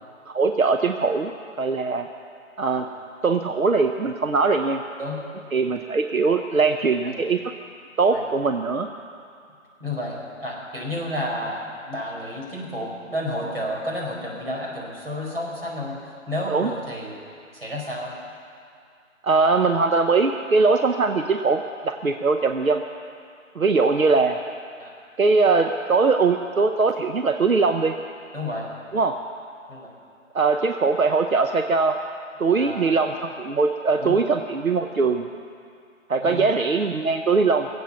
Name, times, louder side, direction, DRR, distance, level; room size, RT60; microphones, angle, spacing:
voice 1, 0.3-1.3 1.6-2.1 2.6-2.8 3.2-4.8 5.5-7.4 8.0-8.9 16.5-16.7 19.2-22.8 23.5-24.4 25.2-27.9 28.9-29.1 30.3-32.0 32.4-35.3 36.1-37.7, right 4 dB, 85° right, 6 dB, 0.9 m, -21 dB
voice 2, 6.8-7.2 8.1-8.2 9.8-17.2 17.5-18.2 24.8-24.9 28.3-28.7 29.7-29.9 32.5-33.0 34.0-34.2 36.1-36.5, left 1 dB, 45° right, -4 dB, 4.6 m, -31 dB
20.5 x 8.1 x 7.2 m, 2.3 s
figure-of-eight pair, 165°, 40 cm